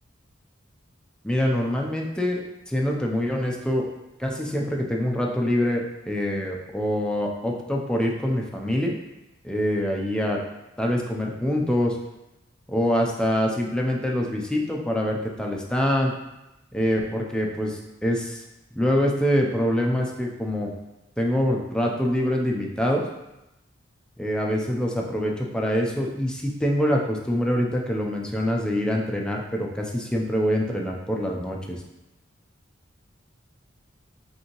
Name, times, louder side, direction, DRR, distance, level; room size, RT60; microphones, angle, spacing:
voice 1, 1.2-3.9 4.2-8.9 9.4-10.4 10.8-12.0 12.7-16.1 16.7-18.4 18.8-20.7 21.2-23.1 24.2-31.8, equal, 5° left, -1 dB, 0.5 m, -25 dB
5.3 x 2.7 x 2.9 m, 0.95 s
head